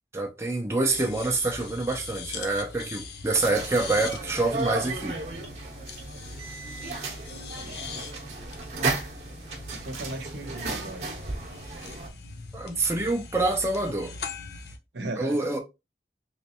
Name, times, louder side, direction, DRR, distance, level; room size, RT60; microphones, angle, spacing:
voice 1, 0.1-5.2 12.5-14.1 15.2-15.6, right 2 dB, 15° right, 0.6 m, -26 dB
sound 1, 0.9-14.8, left 4 dB, 70° left, 0.6 m, -41 dB
sound 2, 3.3-12.1, right 3 dB, 40° right, 0.9 m, -34 dB
voice 2, 7.5-8.0 9.7-11.1 14.9-15.5, right 2 dB, 80° right, 0.8 m, -37 dB
3.2 x 3.1 x 2.9 m
head